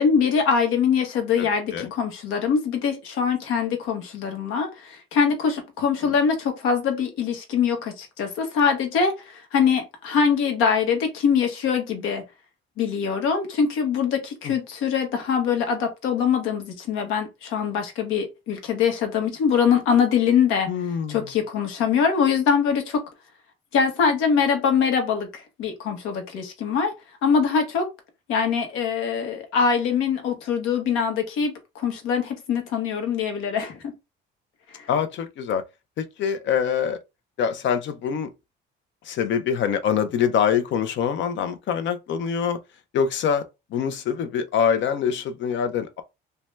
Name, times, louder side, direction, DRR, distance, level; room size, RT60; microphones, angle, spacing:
voice 1, 0.0-12.2 12.8-20.7 21.1-23.0 23.7-26.9 27.2-27.8 28.3-33.9 34.7-34.9, left 6 dB, 80° left, 1.1 m, -23 dB
voice 2, 1.4-1.9 6.0-6.1 14.4-14.5 20.7-21.3 34.9-35.6 36.0-37.0 37.4-38.3 39.1-42.6 42.9-43.4 43.7-46.0, left 7 dB, 60° left, 0.6 m, -24 dB
2.7 x 2.2 x 3.2 m
cardioid pair, 100°, 21 cm